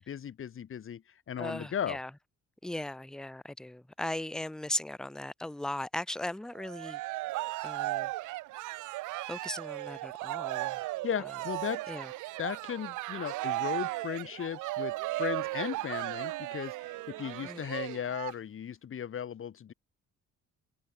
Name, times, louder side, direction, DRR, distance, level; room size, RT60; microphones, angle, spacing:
voice 1, 0.1-2.0 10.8-11.9 12.4-19.7, left 8 dB, 45° left, 1.1 m, -36 dB
voice 2, 1.4-2.1 2.6-7.0 7.6-8.1 9.3-10.8 11.9-12.1 17.4-17.6, left 1 dB, ahead, 0.6 m, -37 dB
Cheering, 6.6-18.3, right 19 dB, 80° right, 0.5 m, -36 dB
cardioid pair, 90°, 30 cm